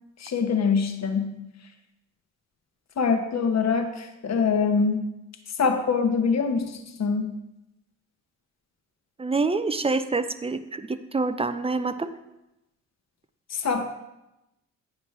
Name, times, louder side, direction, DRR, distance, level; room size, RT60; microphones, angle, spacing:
voice 1, 0.2-1.4 3.0-5.0 5.5-7.3 13.5-13.9, left 5 dB, 40° left, 5 dB, 1.0 m, -24 dB
voice 2, 9.2-12.1, right 3 dB, 15° right, 11 dB, 0.4 m, -26 dB
9.0 x 6.2 x 3.2 m, 0.91 s
hypercardioid pair, 50°, 40 cm